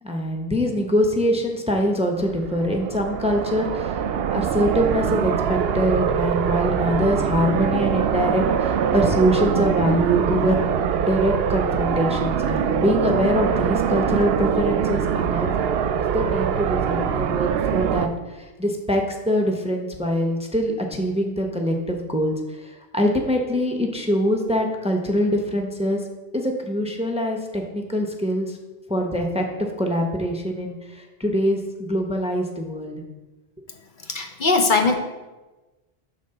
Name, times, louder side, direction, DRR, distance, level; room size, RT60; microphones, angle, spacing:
voice 1, 0.0-4.0 4.3-10.6 11.0-15.5 16.1-18.1 18.3-26.0 26.3-28.6 28.9-29.4 29.8-32.9, equal, 5° right, 2 dB, 0.7 m, -23 dB
sound 1, 2.2-18.1, right 8 dB, 75° right, 0.8 m, -23 dB
voice 2, 34.1-34.9, left 3 dB, 55° left, 4 dB, 0.9 m, -20 dB
9.2 x 3.9 x 6.7 m, 1.1 s
omnidirectional pair, 1.0 m